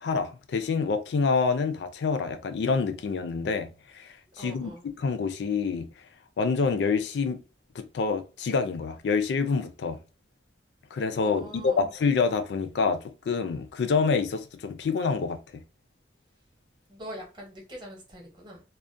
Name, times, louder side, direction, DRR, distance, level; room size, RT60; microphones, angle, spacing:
voice 1, 0.0-4.7 5.0-5.9 6.4-7.4 7.8-10.0 10.9-13.0 13.3-15.4, left 4 dB, 70° left, 0.4 m, -27 dB
voice 2, 4.4-4.8 11.2-11.9 16.9-18.6, equal, 25° right, 0.8 m, -43 dB
2.3 x 2.0 x 2.5 m
head